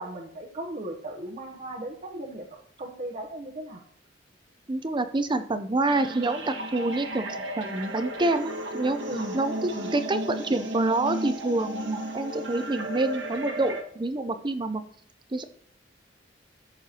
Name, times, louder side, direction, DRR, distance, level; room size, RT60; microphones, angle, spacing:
voice 1, 0.0-2.5 2.8-3.8 9.0-9.4 9.6-10.0, right 1 dB, 45° right, 0 dB, 0.9 m, -36 dB
voice 2, 4.7-7.3 7.6-9.0 9.3-14.8 15.3-15.4, right 2 dB, 25° right, 10 dB, 0.6 m, -27 dB
sound 1, 5.9-13.8, right 1 dB, 75° right, 1.6 m, -34 dB
14.0 x 6.5 x 2.9 m, 0.63 s
head